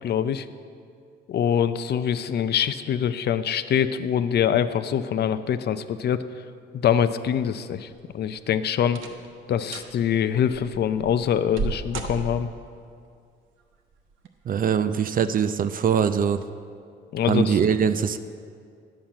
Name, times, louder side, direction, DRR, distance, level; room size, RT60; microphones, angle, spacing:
voice 1, 0.0-0.5 1.3-6.2 6.7-9.0 9.5-12.5 17.1-17.6, left 8 dB, 55° left, 12 dB, 0.5 m, -24 dB
sound 1, 7.9-8.4 8.9-9.3 9.6-9.9 10.5-12.7 13.9-14.5 14.9-15.0 15.8-16.0 16.4-16.5, right 4 dB, 85° right, 1.0 m, -34 dB
voice 2, 14.5-16.4 17.3-18.2, right 7 dB, 45° right, 11 dB, 0.5 m, -22 dB
10.5 x 5.7 x 7.6 m, 2.3 s
cardioid pair, 90°, 20 cm